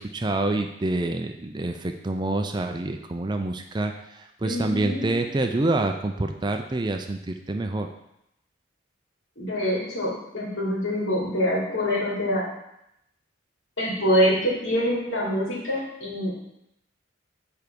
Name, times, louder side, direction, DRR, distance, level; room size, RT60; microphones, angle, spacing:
voice 1, 0.0-3.9 4.4-7.9, right 2 dB, 20° right, 5 dB, 0.4 m, -27 dB
voice 2, 4.4-5.1 9.4-12.4 13.8-16.3, equal, 75° left, -6 dB, 3.1 m, -25 dB
7.0 x 4.6 x 5.2 m, 0.82 s
head